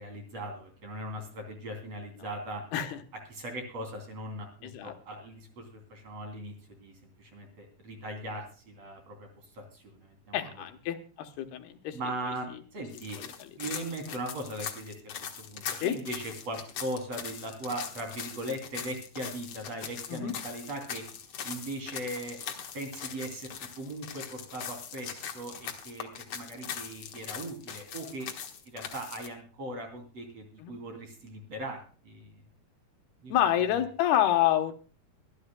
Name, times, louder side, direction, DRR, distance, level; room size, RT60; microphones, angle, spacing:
voice 1, 0.0-2.6 3.3-9.3 9.5-10.5 11.9-13.2 13.5-14.9 15.4-21.0 21.4-22.4 22.7-23.5 23.8-28.3 28.7-32.3 33.2-33.4, right 1 dB, 40° right, 4 dB, 3.8 m, -39 dB
voice 2, 4.6-4.9 10.3-12.0 12.2-12.3 13.2-13.5 15.8-16.0 20.1-20.3 30.6-30.7 33.3-34.7, left 11 dB, 80° left, 7 dB, 3.1 m, -28 dB
sound 1, 12.9-29.3, left 7 dB, 60° left, 1.4 m, -41 dB
24.0 x 11.5 x 2.2 m, 0.36 s
omnidirectional pair, 4.5 m